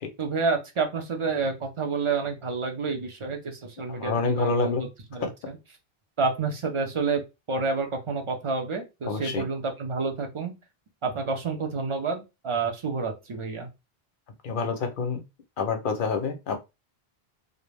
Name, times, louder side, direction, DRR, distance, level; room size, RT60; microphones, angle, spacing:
voice 1, 0.2-5.6 6.2-7.2 7.5-10.6 11.0-13.7, right 4 dB, 45° right, 4 dB, 0.4 m, -29 dB
voice 2, 3.9-4.8 5.2-5.3 9.1-9.5 14.4-15.2 15.6-16.6, left 4 dB, 60° left, 6 dB, 0.6 m, -27 dB
2.4 x 2.0 x 3.2 m, 0.24 s
omnidirectional pair, 1.0 m